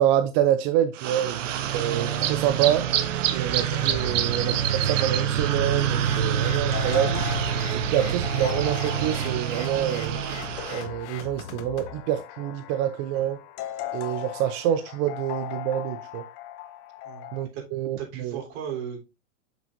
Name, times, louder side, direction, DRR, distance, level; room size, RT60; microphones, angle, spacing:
voice 1, 0.0-1.5 1.7-2.9 3.3-7.2 7.7-10.2 10.7-13.4 13.9-16.2 17.3-18.4, right 11 dB, 40° right, 0.5 m, -26 dB
sound 1, 1.0-10.9, right 9 dB, 75° right, 1.0 m, -26 dB
sound 2, 3.7-17.4, left 12 dB, 45° left, 0.9 m, -39 dB
sound 3, 5.8-12.0, left 8 dB, 65° left, 1.2 m, -41 dB
voice 2, 17.0-17.6 18.0-19.0, right 8 dB, 55° right, 3.4 m, -36 dB
7.3 x 6.0 x 2.6 m
hypercardioid pair, 120°, 38 cm